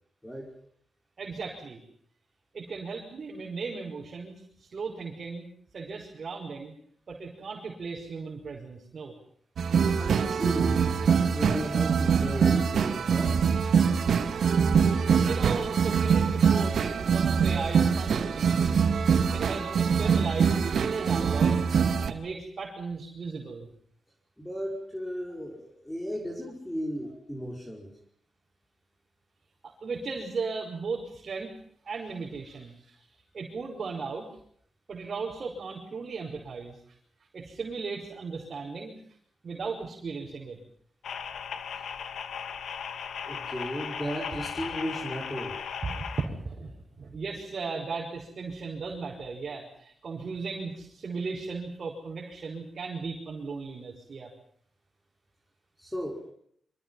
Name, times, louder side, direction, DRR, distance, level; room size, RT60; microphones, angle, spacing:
voice 1, 0.2-0.5 10.0-10.9 11.3-13.4 24.4-27.9 43.3-45.6 55.8-56.2, equal, 5° left, 0 dB, 5.3 m, -35 dB
voice 2, 1.2-1.8 2.5-5.5 5.7-6.8 7.1-9.1 15.2-18.9 19.3-21.6 22.1-23.7 29.6-31.5 31.8-33.0 33.3-34.3 34.9-36.8 37.3-39.0 39.4-40.6 44.3-44.4 45.8-54.3, right 4 dB, 45° right, -1 dB, 5.6 m, -36 dB
sound 1, 9.6-22.1, right 6 dB, 70° right, 2.5 m, -24 dB
sound 2, 41.0-46.3, left 7 dB, 80° left, 2.4 m, -37 dB
28.5 x 25.5 x 5.7 m, 0.65 s
wide cardioid pair, 155°, 0 cm